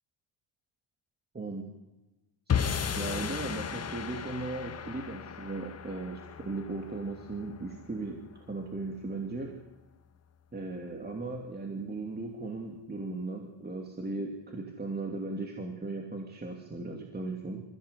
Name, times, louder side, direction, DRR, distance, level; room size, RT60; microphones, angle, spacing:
sound 1, 2.5-8.9, left 7 dB, 30° left, 1.4 m, -35 dB
voice 1, 2.9-8.2 8.5-9.6 10.5-17.6, right 3 dB, 20° right, 1 dB, 2.9 m, -37 dB
27.5 x 15.5 x 8.4 m, 1.0 s
cardioid pair, 125°, 47 cm